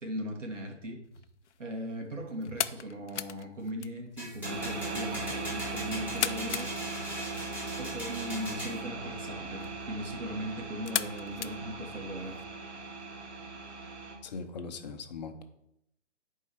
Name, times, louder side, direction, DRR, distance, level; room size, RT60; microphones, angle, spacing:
voice 1, 0.0-1.0 1.6-6.7 7.8-12.3, equal, 85° right, 1 dB, 2.6 m, -38 dB
sound 1, 1.0-12.4, left 9 dB, 70° left, 0.6 m, -40 dB
sound 2, 4.2-8.8, equal, 5° right, 3.6 m, -40 dB
sound 3, 4.4-14.1, right 3 dB, 65° right, 2.1 m, -39 dB
voice 2, 14.2-15.4, left 4 dB, 35° left, 6 dB, 0.9 m, -40 dB
10.0 x 4.7 x 4.7 m, 0.78 s
hypercardioid pair, 155°, 36 cm